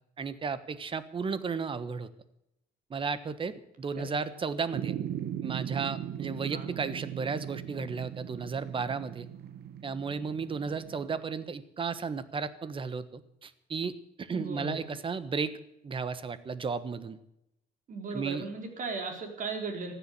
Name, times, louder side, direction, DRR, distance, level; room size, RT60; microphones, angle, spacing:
voice 1, 0.2-2.1 2.9-4.9 5.4-9.3 9.8-13.9 14.2-15.5 15.8-17.2 18.1-18.4, right 5 dB, 30° right, 14 dB, 1.3 m, -34 dB
sound 1, 4.7-11.2, right 10 dB, 70° right, 1.2 m, -39 dB
voice 2, 14.3-14.8 17.9-19.9, right 4 dB, 50° right, 4 dB, 4.3 m, -37 dB
15.0 x 10.5 x 8.4 m, 0.83 s
cardioid pair, 110°, 17 cm